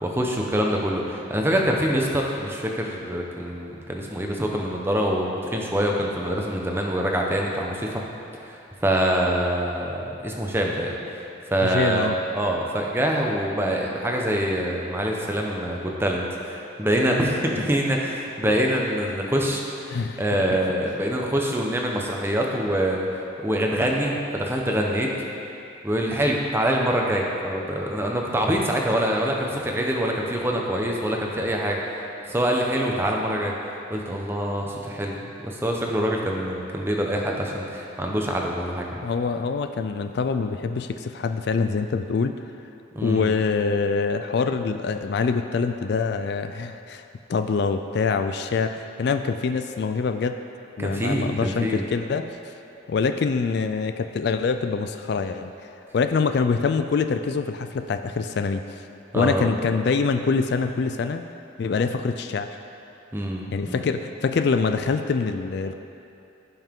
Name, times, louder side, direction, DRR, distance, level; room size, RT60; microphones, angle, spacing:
voice 1, 0.0-7.9 8.4-10.9 11.5-19.6 20.2-23.1 23.4-25.1 25.8-31.8 32.3-33.5 33.9-35.2 35.4-38.8 42.9-43.3 50.8-51.8 59.1-59.5 63.1-63.9, equal, 10° right, -1 dB, 0.8 m, -25 dB
voice 2, 11.6-12.1 19.9-20.6 39.0-42.4 43.0-50.4 50.8-52.3 52.9-55.5 55.9-58.8 59.1-61.2 61.6-62.5 63.5-65.7, left 5 dB, 55° left, 8 dB, 0.3 m, -25 dB
15.5 x 5.6 x 3.7 m, 2.7 s
head